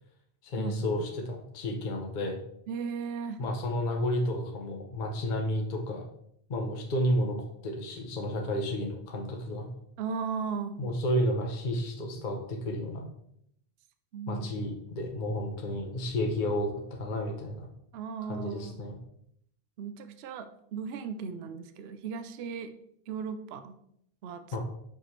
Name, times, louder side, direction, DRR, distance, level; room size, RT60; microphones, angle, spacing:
voice 1, 0.4-2.4 3.4-6.1 6.5-7.4 7.6-9.7 10.8-13.1 14.3-17.7 18.2-19.0 24.5-24.6, left 1 dB, 45° left, 2 dB, 0.9 m, -31 dB
voice 2, 2.7-3.4 10.0-10.8 14.1-14.4 17.9-18.8 19.8-22.7 23.1-23.7 24.2-24.4, right 6 dB, 65° right, 10 dB, 0.8 m, -36 dB
5.8 x 5.5 x 3.2 m, 0.72 s
omnidirectional pair, 1.2 m